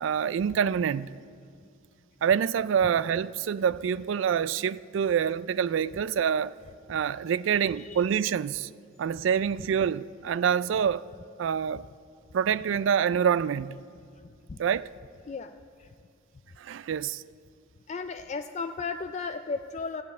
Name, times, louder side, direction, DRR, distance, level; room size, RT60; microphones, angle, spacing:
voice 1, 0.0-1.2 2.2-6.5 6.9-8.7 9.0-11.1 11.4-11.9 12.3-13.8 14.6-14.9 16.6-17.2, right 7 dB, 70° right, 0.3 m, -26 dB
voice 2, 7.7-8.0 14.5-14.6 15.3-15.5 15.8-15.9 17.9-20.0, left 4 dB, 35° left, 0.3 m, -34 dB
14.5 x 7.6 x 9.4 m
head